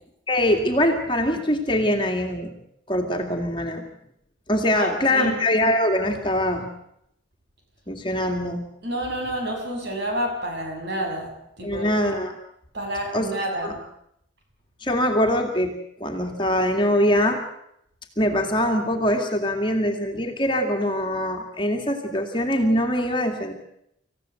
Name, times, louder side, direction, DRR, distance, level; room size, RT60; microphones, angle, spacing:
voice 1, 0.3-2.5 2.9-3.9 4.5-6.7 7.9-8.7 11.6-12.4 13.1-13.3 13.6-13.7 14.8-15.7 16.0-17.4 18.2-23.5, left 1 dB, 25° left, 3 dB, 2.2 m, -23 dB
voice 2, 4.7-5.3 8.1-8.2 8.8-11.3 11.6-11.9 12.7-13.8, right 1 dB, 55° right, 2 dB, 6.2 m, -29 dB
26.5 x 15.5 x 7.9 m, 0.75 s
head